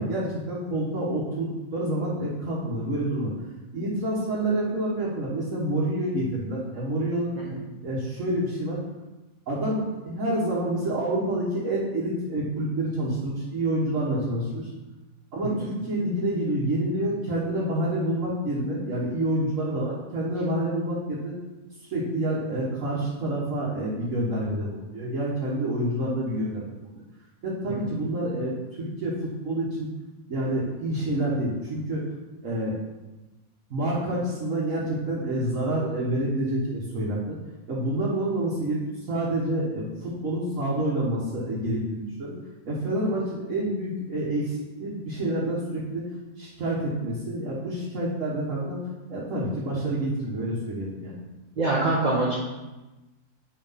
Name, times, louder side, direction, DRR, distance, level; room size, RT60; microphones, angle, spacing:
voice 1, 0.0-3.3 3.7-7.4 7.8-8.8 9.5-14.7 15.3-21.3 21.9-27.0 27.4-29.1 29.4-29.9 30.3-32.0 32.4-32.7 33.7-37.4 37.7-38.8 39.1-42.3 42.7-46.0 46.4-48.8 49.1-51.2, right 1 dB, 60° right, -7 dB, 1.7 m, -28 dB
voice 2, 51.6-52.4, right 2 dB, 35° right, -4 dB, 0.9 m, -23 dB
9.0 x 3.3 x 5.6 m, 1.1 s
omnidirectional pair, 1.6 m